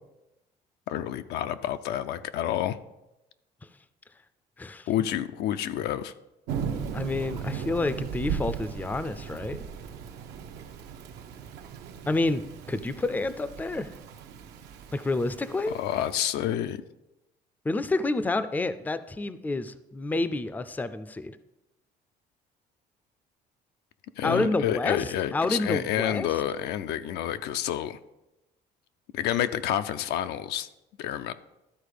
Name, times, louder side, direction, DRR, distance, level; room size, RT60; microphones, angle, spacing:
voice 1, 0.9-2.8 4.9-6.1 15.7-16.8 24.2-28.0 29.1-30.7 31.0-31.3, left 11 dB, 80° left, 10 dB, 0.5 m, -29 dB
Thunder / Rain, 6.5-16.1, right 7 dB, 80° right, 0.8 m, -37 dB
voice 2, 6.9-9.7 12.1-13.9 14.9-15.8 17.6-21.4 24.2-26.3, left 2 dB, 10° left, 13 dB, 0.4 m, -29 dB
12.5 x 4.1 x 5.0 m, 0.95 s
cardioid pair, 110°, 17 cm